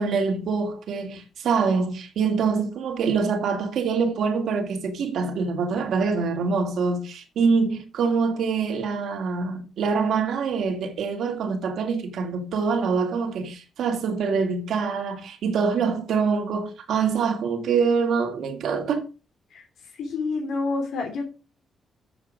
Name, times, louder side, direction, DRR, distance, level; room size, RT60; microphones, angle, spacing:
voice 1, 0.0-19.1, right 5 dB, 70° right, 1.9 m, -25 dB
voice 2, 20.0-21.2, left 3 dB, 75° left, 3.3 m, -28 dB
7.6 x 6.6 x 6.4 m
cardioid pair, 150°, 0 cm